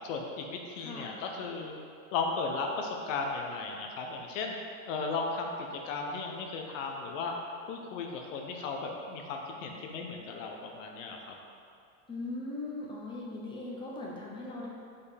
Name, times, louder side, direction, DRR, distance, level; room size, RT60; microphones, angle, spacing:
voice 1, 0.0-1.7 2.1-4.5 4.9-7.3 7.7-11.4, left 4 dB, 70° left, 1 dB, 0.9 m, -35 dB
voice 2, 0.8-1.1 12.1-14.7, left 2 dB, 10° left, -4 dB, 1.0 m, -39 dB
5.3 x 4.6 x 5.0 m, 2.4 s
supercardioid pair, 140°, 40 cm